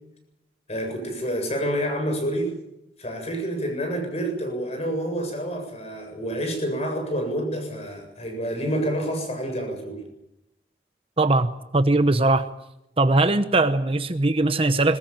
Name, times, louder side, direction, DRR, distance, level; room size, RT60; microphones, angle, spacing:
voice 1, 0.7-2.5 3.0-10.0, equal, 35° left, 5 dB, 7.7 m, -28 dB
voice 2, 11.2-12.5 13.0-15.0, right 2 dB, 30° right, 10 dB, 0.9 m, -20 dB
22.0 x 20.0 x 8.9 m, 0.87 s
head